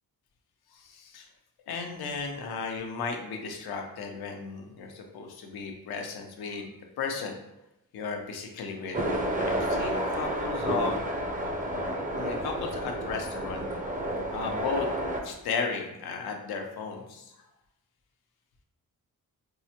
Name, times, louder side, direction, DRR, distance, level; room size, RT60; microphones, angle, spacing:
voice 1, 0.7-1.3 1.7-6.7 7.0-7.4 7.9-11.0 11.7-13.7 14.3-14.9 15.2-17.4, left 5 dB, 85° left, 3 dB, 0.6 m, -35 dB
sound 1, 8.9-15.2, right 1 dB, 20° right, 0.5 m, -30 dB
4.6 x 2.1 x 2.8 m, 0.91 s
cardioid pair, 80°, 36 cm